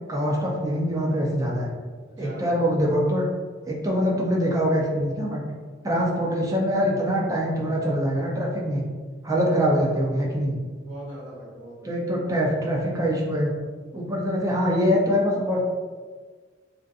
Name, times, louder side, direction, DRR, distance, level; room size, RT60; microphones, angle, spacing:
voice 1, 0.1-1.7 2.2-3.3 3.7-5.4 5.8-8.8 9.2-10.6 11.8-13.5 13.9-15.6, equal, 15° right, -2 dB, 0.4 m, -24 dB
voice 2, 2.1-2.7 10.6-11.9, right 1 dB, 65° right, -8 dB, 1.1 m, -41 dB
2.6 x 2.4 x 2.3 m, 1.5 s
head